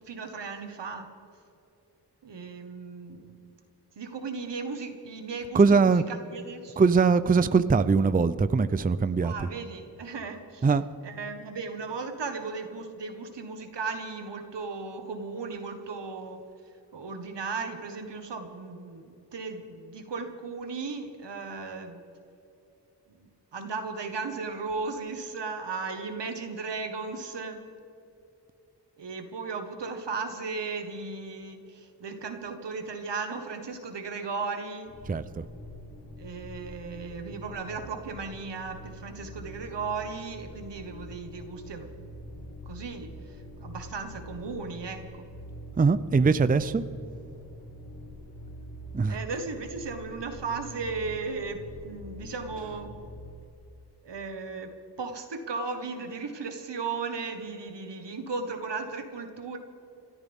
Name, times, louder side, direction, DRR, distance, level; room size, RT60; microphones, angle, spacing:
voice 1, 0.1-1.1 2.2-3.3 3.9-6.8 9.2-10.6 11.0-16.4 16.9-22.0 23.2-27.6 29.0-35.0 36.2-41.9 42.4-45.2 49.1-53.0 54.0-59.6, right 4 dB, 85° right, 6 dB, 1.6 m, -36 dB
voice 2, 5.5-6.0 6.8-9.3 10.6-10.8 35.1-35.4 45.8-46.8 48.9-49.2, right 4 dB, 20° right, 13 dB, 0.5 m, -22 dB
sound 1, 34.9-53.4, equal, 60° left, 2.4 m, -45 dB
30.0 x 13.5 x 3.6 m, 2.9 s
wide cardioid pair, 90°, 41 cm